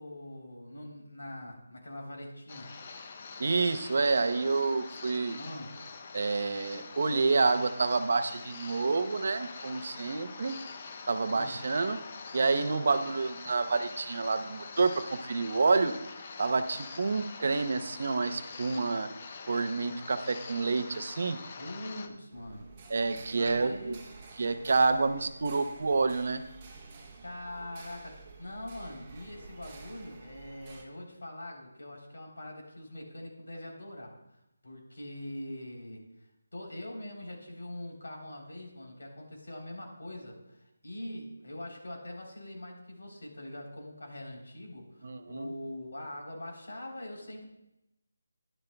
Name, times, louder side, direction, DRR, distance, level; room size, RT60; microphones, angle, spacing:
voice 1, 0.0-2.7 5.4-5.7 11.3-11.6 21.6-22.7 23.4-24.0 27.2-34.2 34.6-36.1 36.5-47.4, left 1 dB, 85° left, 0 dB, 3.4 m, -43 dB
sound 1, 2.5-22.1, left 4 dB, 25° left, 0.5 m, -45 dB
voice 2, 3.4-5.4 6.1-10.6 11.1-12.0 12.3-15.9 16.4-19.1 19.5-21.4 22.9-24.0 24.4-26.4 45.0-45.5, right 4 dB, 45° right, 9 dB, 0.6 m, -28 dB
sound 2, 22.3-30.8, right 3 dB, 15° right, 0.8 m, -50 dB
11.5 x 11.0 x 2.2 m, 0.87 s
figure-of-eight pair, 175°, 0 cm